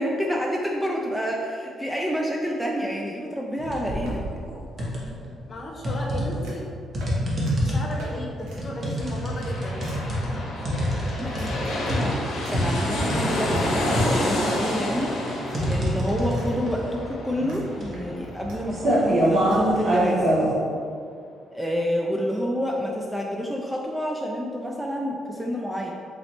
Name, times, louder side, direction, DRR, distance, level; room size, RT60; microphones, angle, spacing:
voice 1, 0.0-4.3 11.2-20.3 21.5-25.9, equal, 5° right, -1 dB, 0.3 m, -29 dB
sound 1, 3.6-4.0 4.4-5.3 5.8-20.5, equal, 40° right, 1.0 m, -25 dB
sound 2, 3.8-5.1 6.4-6.7 7.0-7.2 7.5-7.6 8.0-8.1 8.4-8.6 9.0-9.3 9.8-10.0 10.7-10.8 11.4-12.0 12.4-12.5 13.0-13.1 13.6-13.7 14.1-14.7 15.0-15.1 15.5-16.5 16.8-16.9 17.5-17.6 17.9-18.6 18.9-19.0 19.2-19.3 19.5-19.6 19.9-20.1, right 1 dB, 85° right, 0.8 m, -40 dB
voice 2, 5.5-6.7 7.6-9.8, left 1 dB, 35° left, -2 dB, 0.8 m, -35 dB
sound 3, 8.9-20.3 20.6-20.7, left 1 dB, 75° left, 0.8 m, -30 dB
4.0 x 3.1 x 2.9 m, 2.3 s
cardioid pair, 90°, 0 cm